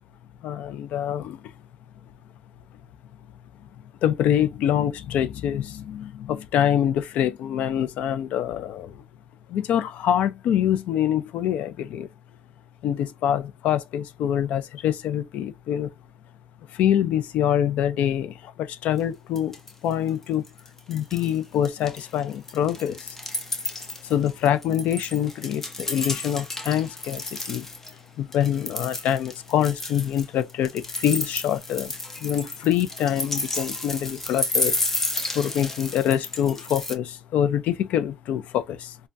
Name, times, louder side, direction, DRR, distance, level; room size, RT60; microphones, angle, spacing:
voice 1, 0.4-1.4 4.0-9.0 9.5-12.1 12.8-15.9 16.7-19.6 19.8-20.4 20.9-23.2 24.0-27.7 28.2-31.9 32.2-34.7 35.3-39.0, left 10 dB, 85° left, 0.4 m, -25 dB
sound 1, 19.0-19.1 19.4-19.9 20.2-21.4 21.6-27.9 28.3-36.9, left 2 dB, 15° left, 0.5 m, -32 dB
3.3 x 2.1 x 2.4 m
cardioid pair, 175°, 2 cm